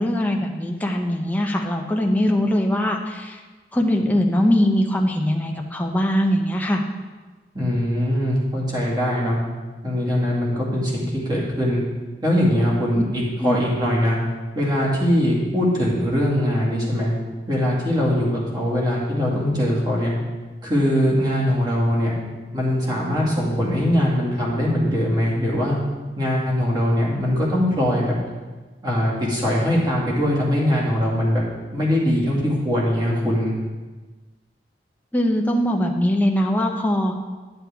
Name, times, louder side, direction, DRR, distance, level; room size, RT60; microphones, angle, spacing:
voice 1, 0.0-3.4 3.7-6.8 13.4-13.6 35.1-37.1, equal, 10° left, 1 dB, 0.8 m, -21 dB
voice 2, 7.5-9.4 9.8-11.8 12.2-14.2 14.5-17.1 17.5-20.1 20.6-22.1 22.5-25.8 26.2-28.1 28.8-31.4 31.7-33.5, equal, 25° right, -5 dB, 2.2 m, -21 dB
12.0 x 7.7 x 3.5 m, 1.3 s
head